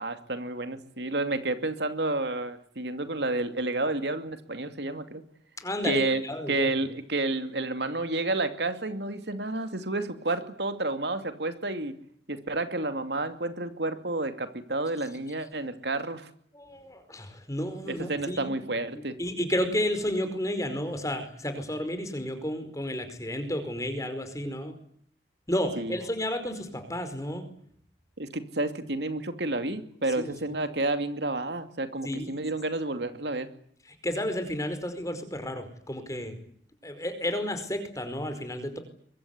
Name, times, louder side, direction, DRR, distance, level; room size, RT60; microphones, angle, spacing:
voice 1, 0.0-5.2 5.8-6.2 6.5-11.9 12.3-16.3 17.9-19.2 25.8-26.0 28.2-33.5, right 2 dB, 75° right, 9 dB, 2.5 m, -30 dB
voice 2, 5.6-6.7 16.5-18.5 18.9-24.7 25.5-27.4 30.2-30.3 32.0-32.3 34.0-36.3 36.8-38.8, left 1 dB, 20° left, 9 dB, 4.9 m, -32 dB
23.5 x 23.0 x 9.7 m, 0.63 s
head